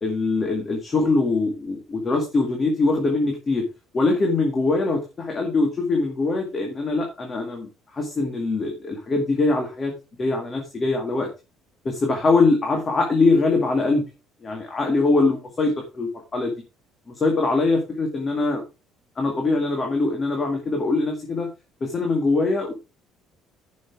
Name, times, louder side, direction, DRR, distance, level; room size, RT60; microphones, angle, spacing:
voice 1, 0.0-3.7 3.9-9.9 10.2-11.3 11.8-14.0 14.4-16.5 17.1-18.6 19.2-21.5 21.8-22.7, left 3 dB, 25° left, 2 dB, 2.1 m, -22 dB
10.5 x 6.3 x 4.7 m, 0.29 s
cardioid pair, 160°, 0 cm